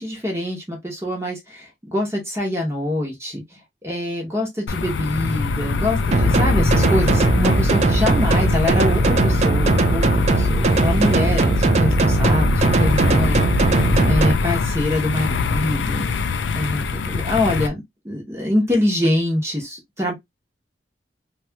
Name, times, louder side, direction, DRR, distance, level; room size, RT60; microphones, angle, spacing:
voice 1, 0.0-13.4 14.1-16.1 16.5-20.1, left 1 dB, 15° right, 0.9 m, -25 dB
sound 1, 4.7-17.7, left 4 dB, 80° left, 0.4 m, -23 dB
sound 2, 6.1-14.3, right 3 dB, 40° right, 0.3 m, -19 dB
2.9 x 2.3 x 2.7 m
head